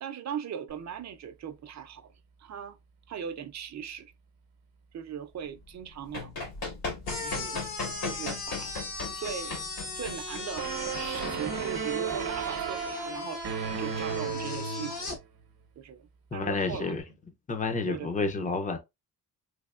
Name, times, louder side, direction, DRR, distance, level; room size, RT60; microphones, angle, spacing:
voice 1, 0.0-2.1 2.4-2.8 3.1-4.1 4.9-6.3 7.1-7.6 8.0-8.7 9.1-9.6 10.0-15.2 15.8-16.9 17.9-18.3, right 8 dB, 50° right, 0.5 m, -39 dB
Run, 5.8-12.2, left 3 dB, 80° left, 2.0 m, -38 dB
sound 1, 7.1-15.2, left 3 dB, 55° left, 1.3 m, -38 dB
sound 2, 10.6-15.2, right 7 dB, 75° right, 0.8 m, -34 dB
voice 2, 16.3-17.0 17.5-18.8, left 4 dB, 20° left, 0.6 m, -30 dB
3.4 x 3.3 x 2.4 m
wide cardioid pair, 170°, 36 cm